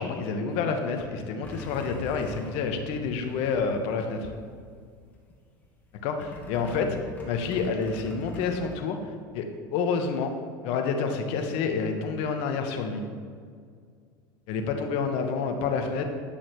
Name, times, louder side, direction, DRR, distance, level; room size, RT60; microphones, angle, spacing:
voice 1, 0.0-4.3 6.0-6.9 7.2-9.0 9.3-10.3 10.6-13.0 14.5-16.1, left 5 dB, 60° left, 5 dB, 1.0 m, -28 dB
sound 1, 1.4-4.4 4.8-5.3 6.2-8.8, left 1 dB, 15° left, 1.7 m, -43 dB
9.9 x 6.2 x 3.1 m, 2.1 s
hypercardioid pair, 85°, 11 cm